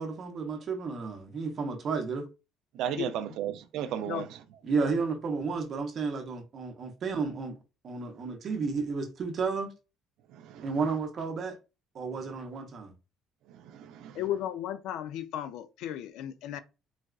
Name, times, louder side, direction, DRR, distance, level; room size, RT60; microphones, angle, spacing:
voice 1, 0.0-2.2 4.6-7.6 7.8-9.7 10.6-11.6 11.9-12.9, right 4 dB, 35° right, 0.7 m, -32 dB
voice 2, 2.7-4.3 10.3-10.7 13.5-14.2, right 10 dB, 65° right, 0.4 m, -35 dB
voice 3, 14.2-16.6, left 11 dB, 75° left, 0.3 m, -35 dB
4.0 x 2.3 x 2.3 m
cardioid pair, 175°, 0 cm